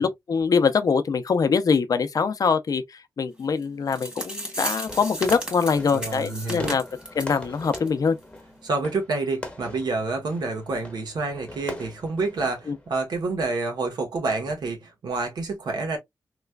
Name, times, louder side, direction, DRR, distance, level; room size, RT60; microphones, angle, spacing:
voice 1, 0.0-6.8 7.1-8.2 12.7-12.8, left 5 dB, 60° left, 0.5 m, -23 dB
sound 1, 3.6-3.7 3.9-7.3 7.7-7.9 8.2-8.3 8.8-8.9, right 1 dB, 15° right, 1.9 m, -34 dB
Fireworks, 4.9-12.9, left 1 dB, 15° left, 1.0 m, -41 dB
voice 2, 5.9-6.8 8.6-16.0, right 3 dB, 85° right, 1.3 m, -28 dB
3.3 x 3.0 x 2.2 m
wide cardioid pair, 105°, 7 cm